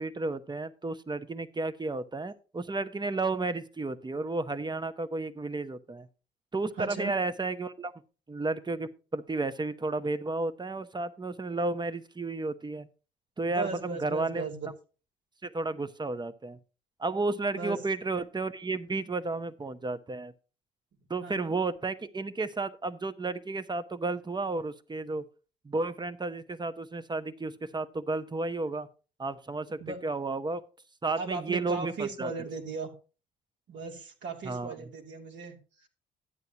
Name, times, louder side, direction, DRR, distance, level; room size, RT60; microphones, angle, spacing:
voice 1, 0.0-6.1 6.5-7.9 8.3-12.9 13.4-14.4 15.4-16.6 17.0-20.3 21.1-25.2 25.6-28.9 29.2-30.6 31.0-32.3 34.4-34.7, right 3 dB, 20° right, 13 dB, 1.0 m, -32 dB
voice 2, 6.8-7.1 13.5-14.7 17.5-17.8 21.2-21.6 29.8-30.0 31.1-32.9 33.7-35.9, right 4 dB, 65° right, 1 dB, 2.9 m, -37 dB
12.5 x 9.3 x 2.9 m, 0.35 s
hypercardioid pair, 55°, 20 cm